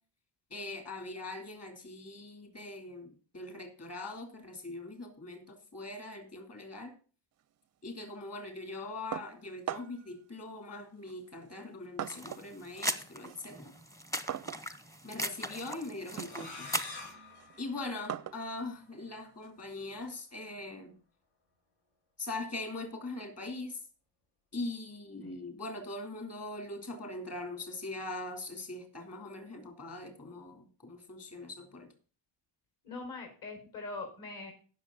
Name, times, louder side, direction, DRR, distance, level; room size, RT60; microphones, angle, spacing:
voice 1, 0.5-7.0 7.8-13.7 15.0-16.7 17.6-21.0 22.2-23.8 24.5-31.9, left 2 dB, 30° left, 5 dB, 3.6 m, -41 dB
sound 1, 9.1-10.1 11.0-12.6 12.9-20.2, right 10 dB, 35° right, 0.4 m, -43 dB
sound 2, 12.0-17.1, equal, 5° left, 0.8 m, -39 dB
sound 3, 16.2-18.8, left 3 dB, 80° left, 5.5 m, -47 dB
voice 2, 32.8-34.5, left 3 dB, 50° left, 3 dB, 5.6 m, -42 dB
17.0 x 6.7 x 4.0 m, 0.39 s
cardioid pair, 135°, 47 cm